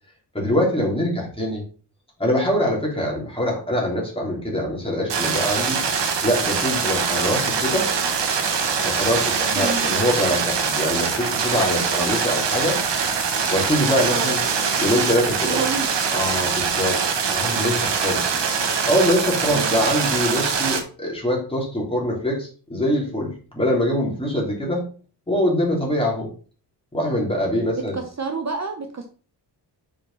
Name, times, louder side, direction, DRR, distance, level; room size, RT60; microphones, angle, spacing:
voice 1, 0.3-1.6 2.2-5.8 6.2-7.9 8.8-12.8 13.5-14.4 14.8-15.6 16.1-17.0 17.3-18.3 18.9-24.9 25.3-26.3 26.9-28.0, equal, 15° left, -2 dB, 3.3 m, -23 dB
sound 1, 5.1-20.8, right 6 dB, 80° right, 1.5 m, -23 dB
voice 2, 9.5-9.9 14.1-14.3 15.4-15.9 19.5-19.8 27.7-29.1, right 4 dB, 40° right, 5 dB, 1.0 m, -29 dB
5.8 x 5.6 x 5.5 m, 0.39 s
wide cardioid pair, 130°, 42 cm